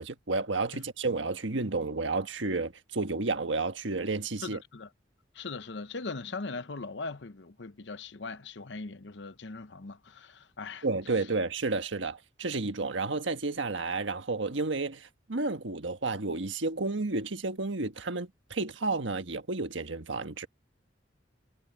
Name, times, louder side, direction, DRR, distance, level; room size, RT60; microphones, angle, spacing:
voice 1, 0.0-4.6 10.8-20.5, right 3 dB, 80° right, 1.5 m, -31 dB
voice 2, 4.4-4.9 5.3-10.8, left 3 dB, 65° left, 0.9 m, -40 dB
head